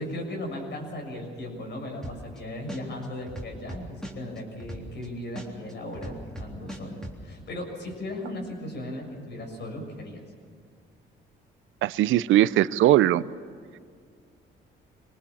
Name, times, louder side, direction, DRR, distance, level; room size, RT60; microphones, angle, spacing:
voice 1, 0.0-10.2, left 1 dB, 60° left, 2 dB, 6.9 m, -37 dB
sound 1, 2.0-2.4 2.7-5.1 5.4-7.2, right 1 dB, 5° left, 3.5 m, -38 dB
voice 2, 11.8-13.2, right 13 dB, 80° right, 18 dB, 0.6 m, -20 dB
24.5 x 19.5 x 7.1 m, 2.1 s
cardioid pair, 90°, 20 cm